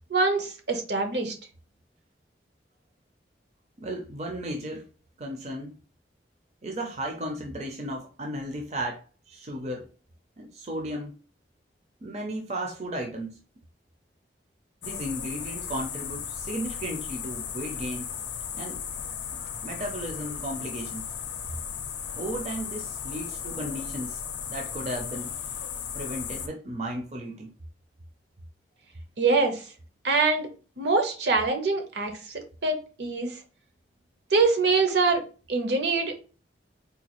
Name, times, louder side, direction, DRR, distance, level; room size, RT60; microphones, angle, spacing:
voice 1, 0.1-1.3 29.2-29.6 30.0-30.5 30.8-32.1 32.6-33.3 34.3-36.1, right 3 dB, 75° right, 0.8 m, -24 dB
voice 2, 3.8-4.8 5.2-5.8 6.6-9.9 10.4-11.1 12.0-13.4 14.8-18.1 18.5-18.8 19.3-21.0 22.1-24.2 24.5-25.3 25.9-27.5, right 1 dB, 40° right, 0.5 m, -35 dB
sound 1, 14.8-26.5, left 8 dB, 80° left, 0.5 m, -36 dB
3.8 x 2.3 x 3.0 m
head